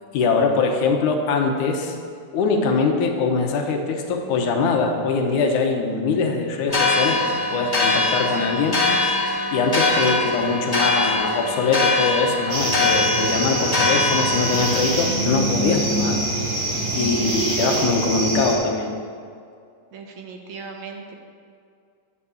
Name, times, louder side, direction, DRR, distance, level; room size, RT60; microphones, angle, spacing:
voice 1, 0.1-2.0 2.3-8.8 9.5-16.2 16.9-18.9, left 4 dB, 75° left, 3 dB, 2.6 m, -22 dB
sound 1, 6.7-14.9, left 3 dB, 15° left, 1.5 m, -22 dB
voice 2, 7.0-7.8 17.0-17.4 19.9-21.1, right 4 dB, 70° right, 2 dB, 2.4 m, -38 dB
sound 2, 12.5-18.5, right 1 dB, 45° right, 4.2 m, -24 dB
11.0 x 8.8 x 7.1 m, 2.3 s
omnidirectional pair, 3.6 m